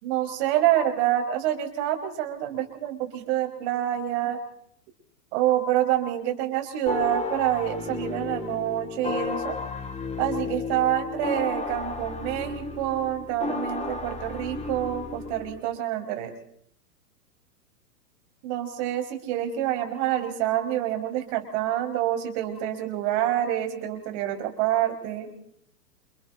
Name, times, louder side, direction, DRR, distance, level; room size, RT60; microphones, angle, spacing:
voice 1, 0.0-4.4 5.3-9.5 10.2-16.3 18.4-25.3, right 12 dB, 45° right, 5 dB, 5.4 m, -27 dB
sound 1, 6.9-15.6, left 4 dB, 15° left, 3.2 m, -33 dB
29.0 x 28.0 x 4.1 m, 0.67 s
hypercardioid pair, 115°, 47 cm